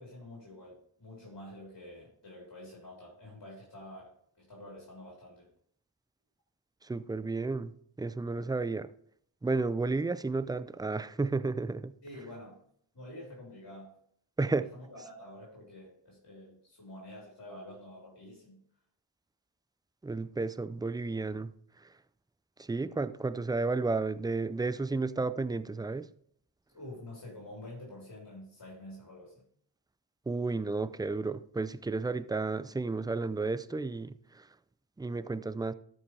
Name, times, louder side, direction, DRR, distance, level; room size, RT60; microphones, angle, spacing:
voice 1, 0.0-5.5 12.0-12.6 12.9-13.9 14.7-18.6 26.7-29.4, left 1 dB, 55° left, 4.0 m, -48 dB
voice 2, 6.8-7.7 8.0-8.9 9.4-11.9 14.4-14.7 20.0-21.5 22.6-26.1 30.3-34.4 35.0-35.7, right 3 dB, 10° right, 0.3 m, -32 dB
12.5 x 5.4 x 3.3 m
cardioid pair, 55°, 44 cm